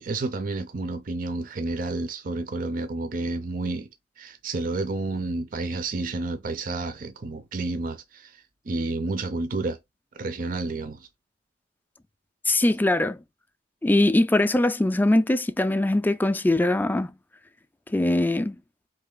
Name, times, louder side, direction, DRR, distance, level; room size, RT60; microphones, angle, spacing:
voice 1, 0.0-3.9 4.2-9.8 10.1-11.1, right 3 dB, 50° right, 0.5 m, -30 dB
voice 2, 12.5-13.2 13.8-17.1 17.9-18.6, left 1 dB, 10° left, 0.3 m, -21 dB
4.1 x 3.3 x 3.7 m
head